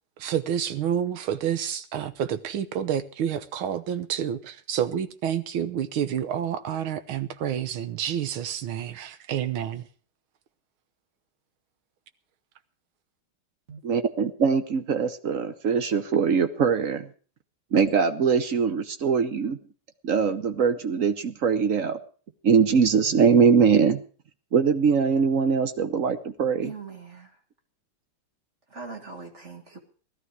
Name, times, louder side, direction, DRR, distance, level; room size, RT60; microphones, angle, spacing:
voice 1, 0.2-9.9, right 9 dB, 75° right, 1.7 m, -29 dB
voice 2, 13.8-17.1 17.7-19.6 20.0-22.0 22.4-24.0 24.5-26.7, right 6 dB, 50° right, 1.0 m, -22 dB
voice 3, 26.6-27.3 28.7-29.8, right 4 dB, 35° right, 2.1 m, -41 dB
17.0 x 12.5 x 4.8 m
omnidirectional pair, 2.4 m